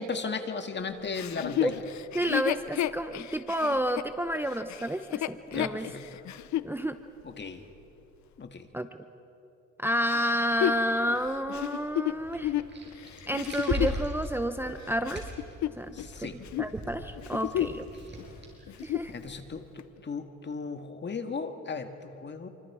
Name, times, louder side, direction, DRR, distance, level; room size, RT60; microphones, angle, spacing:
voice 1, 0.0-1.8 5.5-6.2 7.2-7.6 8.4-8.7 15.9-16.4 19.1-22.5, left 4 dB, 35° left, 7 dB, 1.8 m, -36 dB
Chuckle chortle, 1.1-6.7 7.3-7.4 10.1-14.0 14.7-16.1 16.4-16.7 17.2-17.9 18.2-18.3 18.7-19.2 19.8-19.9, left 12 dB, 65° left, 0.7 m, -32 dB
voice 2, 2.1-5.9 6.6-7.0 8.7-8.9 9.8-12.5 13.3-15.3 15.8-16.3 16.6-17.9 18.8-19.1, equal, 5° right, 8 dB, 0.8 m, -30 dB
sound 1, 12.2-19.5, right 1 dB, 35° right, 7.0 m, -40 dB
27.5 x 25.5 x 4.9 m, 2.9 s
cardioid pair, 90°, 30 cm